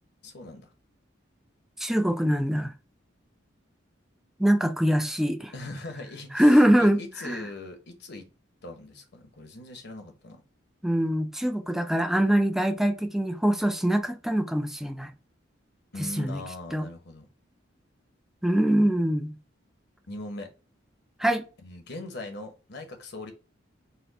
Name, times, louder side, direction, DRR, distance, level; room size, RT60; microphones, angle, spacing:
voice 1, 0.2-0.7 5.5-8.3 8.6-10.4 15.9-17.3 20.1-20.5 21.6-23.3, left 2 dB, 60° left, 1.0 m, -40 dB
voice 2, 1.8-2.7 4.4-5.5 6.3-7.0 7.2-7.5 10.8-15.1 16.2-16.4 16.7-16.9 18.4-19.3 21.2-21.4, equal, ahead, 0.4 m, -23 dB
4.3 x 2.2 x 3.9 m
head